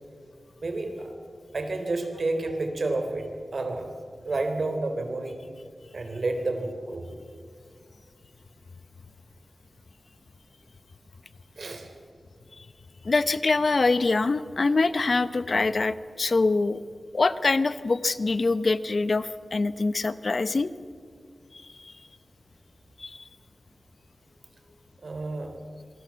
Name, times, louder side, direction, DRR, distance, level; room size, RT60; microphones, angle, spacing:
voice 1, 0.6-1.1 1.5-3.9 4.3-5.4 5.9-7.1 11.6-11.9 25.0-25.5, right 2 dB, 60° right, 6 dB, 3.4 m, -30 dB
voice 2, 13.0-16.8 17.1-20.7 21.8-21.9 23.0-23.2, left 3 dB, 50° left, 14 dB, 0.8 m, -24 dB
26.0 x 21.5 x 7.5 m, 2.1 s
wide cardioid pair, 100°, 0 cm